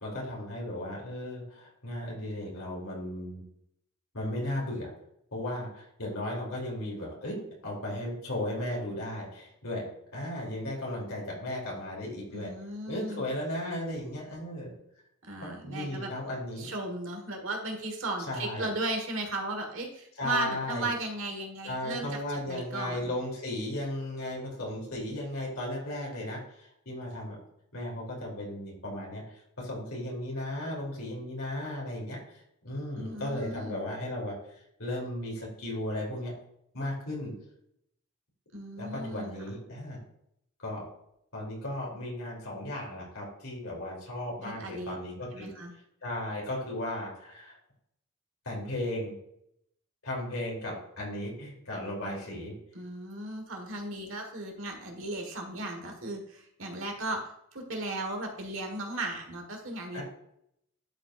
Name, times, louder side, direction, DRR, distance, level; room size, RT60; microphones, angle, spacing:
voice 1, 0.0-3.4 4.1-4.9 5.3-9.8 10.1-12.5 12.8-14.7 15.4-16.7 18.3-18.7 20.2-20.9 21.6-27.4 27.7-29.2 29.6-32.2 32.6-34.3 34.8-36.3 36.7-37.3 38.8-40.0 40.6-40.8 41.3-45.5 46.0-47.5 48.4-49.2 50.0-52.5 59.9-60.0, left 1 dB, 75° left, -2 dB, 2.9 m, -35 dB
voice 2, 12.3-13.3 15.2-16.1 16.6-23.1 32.9-33.8 38.5-39.5 44.4-45.0 45.3-45.7 52.7-57.2 57.5-60.0, right 2 dB, 65° right, 3 dB, 1.5 m, -36 dB
11.0 x 5.1 x 2.5 m, 0.75 s
head